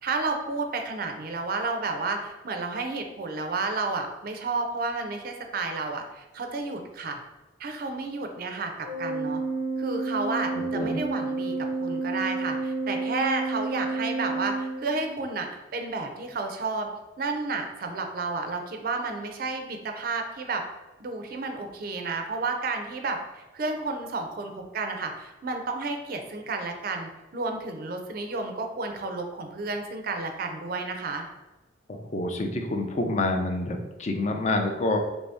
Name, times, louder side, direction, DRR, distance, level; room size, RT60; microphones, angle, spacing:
voice 1, 0.0-7.2 7.6-9.4 9.8-16.9 17.2-20.6 21.0-31.3, right 3 dB, 50° right, 4 dB, 0.4 m, -31 dB
Organ, 8.8-15.4, right 3 dB, 70° left, 1.1 m, -30 dB
voice 2, 31.9-35.0, left 2 dB, 35° left, 4 dB, 0.4 m, -27 dB
3.1 x 2.7 x 3.3 m, 1.1 s
head